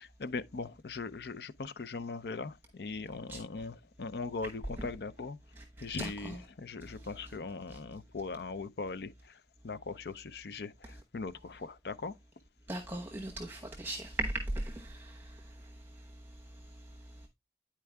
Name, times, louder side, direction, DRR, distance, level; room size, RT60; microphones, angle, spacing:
voice 1, 0.0-5.4 5.8-12.1, left 4 dB, 60° left, 0.5 m, -40 dB
voice 2, 5.6-6.4 7.7-7.8 12.7-15.5, right 1 dB, 10° right, 1.0 m, -38 dB
9.6 x 4.5 x 3.4 m
head